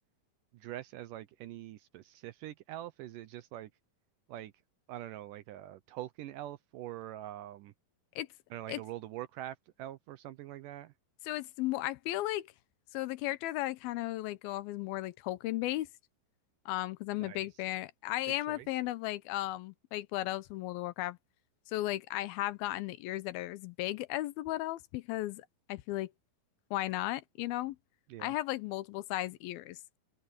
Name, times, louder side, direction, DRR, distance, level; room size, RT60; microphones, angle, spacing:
voice 1, 0.5-3.7 4.3-4.5 4.9-7.7 8.5-10.9 17.2-17.4 18.5-18.7 28.1-28.3, right 13 dB, 75° right, 2.1 m, -44 dB
voice 2, 11.2-12.5 12.9-15.9 16.7-21.2 21.7-26.1 26.7-27.8 28.2-29.8, left 16 dB, 80° left, 2.6 m, -35 dB
open air
omnidirectional pair, 4.3 m